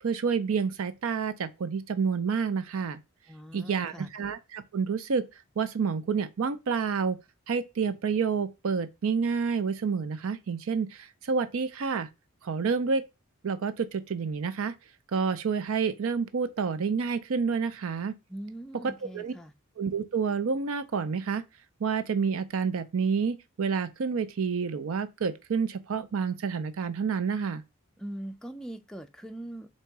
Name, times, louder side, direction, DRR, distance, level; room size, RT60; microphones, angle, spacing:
voice 1, 0.0-3.0 3.5-5.2 5.6-7.2 7.5-12.1 12.4-13.0 13.4-14.7 15.1-18.1 19.1-19.3 19.8-21.4 21.8-27.6, right 5 dB, 70° right, 0.5 m, -29 dB
voice 2, 3.3-4.1 18.3-19.5 28.0-29.7, right 1 dB, 5° left, 0.4 m, -41 dB
3.9 x 2.8 x 4.5 m
head